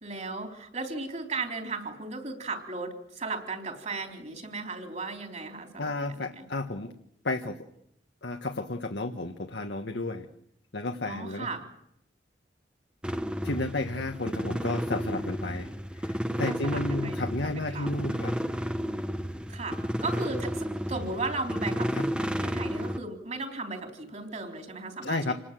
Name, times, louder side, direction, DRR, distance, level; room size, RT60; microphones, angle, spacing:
voice 1, 0.0-6.5 11.0-11.6 16.4-17.9 19.5-25.3, right 3 dB, 40° right, 3 dB, 4.0 m, -36 dB
voice 2, 5.8-6.9 7.2-7.6 8.2-10.3 10.7-11.5 13.4-15.7 16.0-18.3 21.9-22.0 25.0-25.3, left 2 dB, 70° left, 4 dB, 1.4 m, -32 dB
sound 1, 13.0-23.0, equal, 5° right, 0.9 m, -32 dB
28.0 x 19.5 x 7.7 m, 0.77 s
head